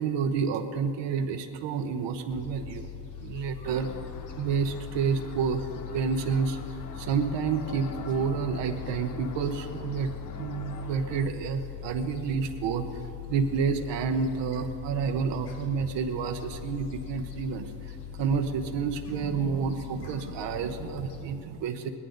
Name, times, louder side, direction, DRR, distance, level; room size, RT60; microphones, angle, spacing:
voice 1, 0.0-2.9 3.2-3.9 4.4-5.7 5.9-6.6 6.9-10.1 10.4-13.0 13.3-21.9, right 6 dB, 85° right, 5 dB, 0.9 m, -29 dB
Gull seagull, 2.3-21.2, left 9 dB, 75° left, 1.5 m, -41 dB
sound 1, 3.6-11.3, left 7 dB, 50° left, 0.6 m, -44 dB
18.0 x 11.0 x 3.9 m, 2.7 s
cardioid pair, 150°, 42 cm